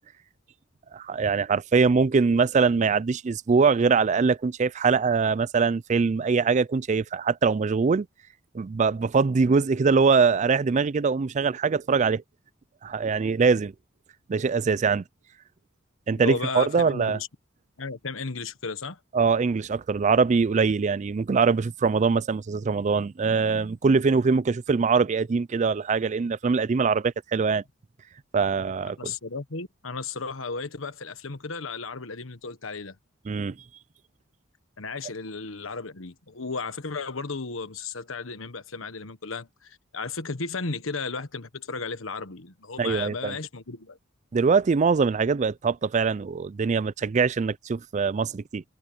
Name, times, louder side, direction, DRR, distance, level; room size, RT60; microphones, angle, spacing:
voice 1, 0.9-8.1 8.5-12.2 12.8-13.7 14.3-15.0 16.1-17.2 19.1-27.6 28.3-29.1 33.3-33.6 42.8-43.3 44.3-48.6, right 5 dB, 35° right, 0.4 m, -23 dB
voice 2, 16.1-17.3 17.8-19.0 29.0-32.9 34.8-44.0, left 4 dB, 90° left, 1.4 m, -34 dB
head